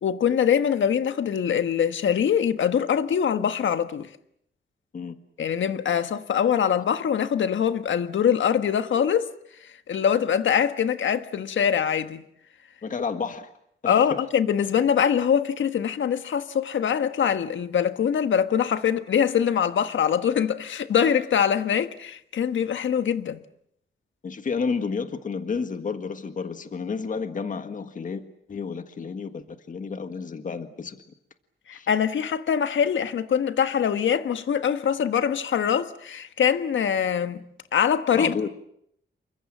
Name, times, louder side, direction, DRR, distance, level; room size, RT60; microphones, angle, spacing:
voice 1, 0.0-4.1 5.4-9.3 9.9-12.2 13.9-23.4 31.7-37.4 37.7-38.3, left 8 dB, 85° left, 1.5 m, -23 dB
voice 2, 12.8-13.5 13.8-14.2 24.2-28.2 28.5-31.0 31.7-31.9 38.1-38.5, left 5 dB, 45° left, 1.7 m, -31 dB
28.5 x 24.5 x 7.5 m
wide cardioid pair, 150°, 19 cm